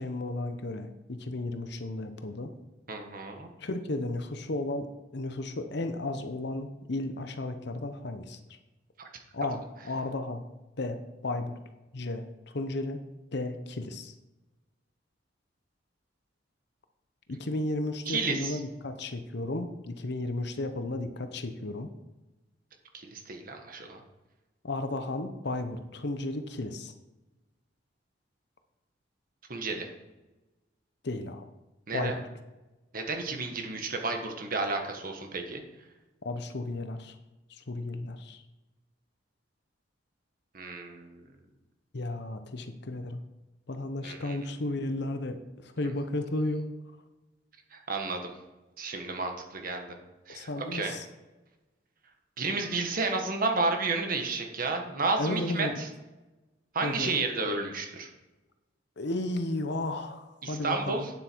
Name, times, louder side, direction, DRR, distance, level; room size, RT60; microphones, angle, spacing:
voice 1, 0.0-2.5 3.6-4.9 5.1-8.4 9.3-10.4 10.8-11.6 11.9-12.3 12.5-13.0 13.3-14.1 17.3-21.9 24.6-26.9 31.0-31.5 31.9-32.3 36.2-37.2 37.5-38.4 41.9-43.2 43.7-46.7 50.3-51.1 55.2-55.8 56.8-57.2 59.0-61.1, left 2 dB, 60° left, 8 dB, 0.9 m, -34 dB
voice 2, 2.9-3.5 9.0-9.1 18.1-18.6 22.9-24.0 29.5-29.9 31.9-32.2 32.9-35.6 40.5-41.2 44.0-44.4 47.7-48.3 48.8-50.0 50.3-51.0 52.4-55.9 56.7-58.1 60.4-61.1, right 3 dB, 50° right, 4 dB, 1.4 m, -32 dB
9.1 x 7.7 x 4.6 m, 1.1 s
head